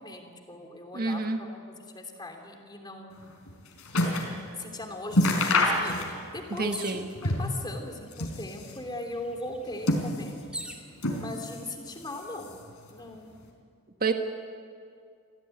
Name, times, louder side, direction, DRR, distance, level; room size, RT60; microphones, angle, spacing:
voice 1, 0.0-3.2 4.4-10.4 10.7-10.9 11.2-12.5 12.9-13.4 14.0-14.1, left 2 dB, 20° left, 3 dB, 3.1 m, -39 dB
voice 2, 0.9-1.4 6.5-7.1 14.0-14.1, right 3 dB, 45° right, 5 dB, 1.4 m, -28 dB
sound 1, 3.2-4.4 4.7-4.8 5.1-6.4 6.7-7.6 8.0-8.9 9.5-10.5 11.0-11.7 12.0-12.7 13.4-13.5, left 1 dB, 80° left, 4.7 m, -28 dB
sound 2, 6.7-7.1 8.1-8.2 8.5-10.9 11.6-12.1, right 1 dB, 5° right, 2.2 m, -41 dB
26.5 x 16.5 x 9.2 m, 2.3 s
head